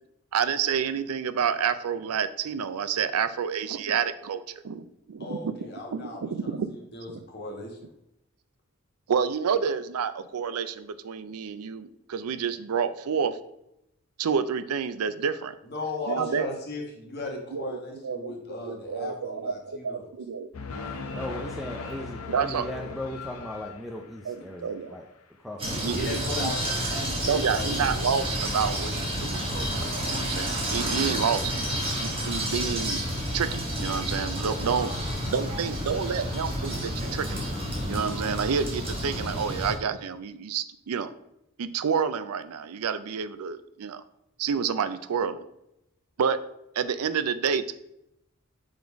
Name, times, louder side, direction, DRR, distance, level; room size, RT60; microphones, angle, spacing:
voice 1, 0.3-5.5 5.9-6.7 9.1-13.4 14.2-15.5 16.1-16.5 17.5-17.8 18.0-20.5 22.3-22.6 24.3-24.4 24.6-25.0 25.7-26.5 27.3-29.8 30.1-31.5 32.0-33.0 33.3-34.9 35.3-37.4 37.9-41.1 41.6-44.0 44.4-45.4 46.2-46.4 46.8-47.7, right 6 dB, 85° right, 12 dB, 0.4 m, -29 dB
voice 2, 5.2-7.8 15.6-20.1 25.9-27.8, left 2 dB, 45° left, 0 dB, 1.3 m, -37 dB
sound 1, 20.5-24.3, left 4 dB, 80° left, 0.7 m, -38 dB
voice 3, 20.8-25.1 25.4-26.0, left 1 dB, ahead, 2 dB, 0.4 m, -38 dB
sound 2, 25.6-39.7, equal, 25° right, 1.4 m, -30 dB
5.2 x 3.9 x 4.6 m, 0.82 s
head